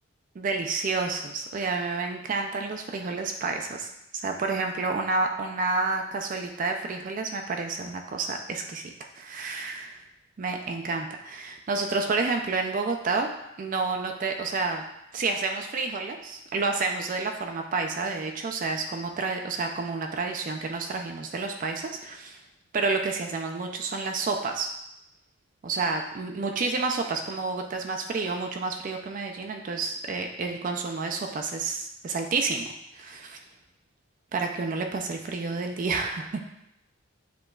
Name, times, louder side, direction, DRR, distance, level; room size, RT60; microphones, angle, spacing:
voice 1, 0.4-10.0 10.4-13.3 13.6-14.8 15.1-22.4 22.7-24.7 25.6-32.7 32.9-33.4 34.3-36.4, right 3 dB, 40° right, 3 dB, 0.3 m, -30 dB
7.5 x 3.0 x 2.3 m, 0.83 s
head